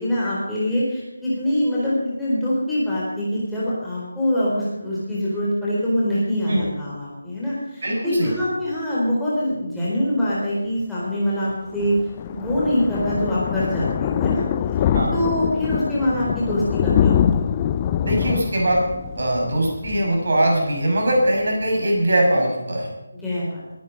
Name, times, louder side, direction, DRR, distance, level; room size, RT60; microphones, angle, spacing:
voice 1, 0.0-12.0 12.3-14.4 14.8-17.4 23.2-23.6, equal, ahead, -10 dB, 4.1 m, -24 dB
voice 2, 7.8-8.3 14.9-15.1 18.0-18.8 19.2-22.9, right 1 dB, 50° right, 0 dB, 6.2 m, -21 dB
Thunder, 11.4-20.8 21.2-21.4 21.7-21.8 22.0-22.1, left 9 dB, 20° left, 0.5 m, -24 dB
21.5 x 10.5 x 5.3 m, 0.99 s
figure-of-eight pair, 155°, 0 cm